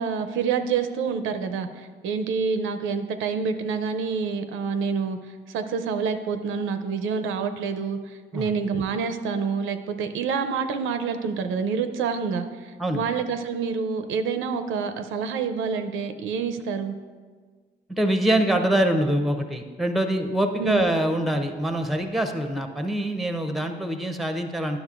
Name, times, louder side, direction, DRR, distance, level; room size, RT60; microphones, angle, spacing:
voice 1, 0.0-5.2 5.5-16.9 20.6-20.8, right 5 dB, 85° right, 8 dB, 0.5 m, -27 dB
voice 2, 17.9-24.8, right 1 dB, ahead, 6 dB, 0.6 m, -24 dB
9.8 x 6.2 x 2.4 m, 1.5 s
cardioid pair, 90°, 20 cm